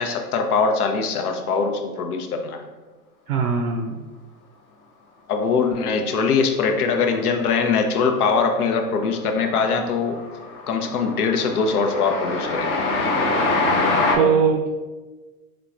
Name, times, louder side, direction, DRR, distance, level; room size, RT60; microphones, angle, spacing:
voice 1, 0.0-2.6 5.3-10.2 10.7-12.8 14.2-14.3, left 5 dB, 75° left, 5 dB, 0.7 m, -22 dB
voice 2, 3.3-3.9 14.1-14.7, right 6 dB, 75° right, 3 dB, 0.5 m, -20 dB
Train, 8.5-9.0 9.3-14.2, left 2 dB, 25° left, 0.5 m, -24 dB
3.8 x 3.5 x 2.4 m, 1.2 s
hypercardioid pair, 90°, 45 cm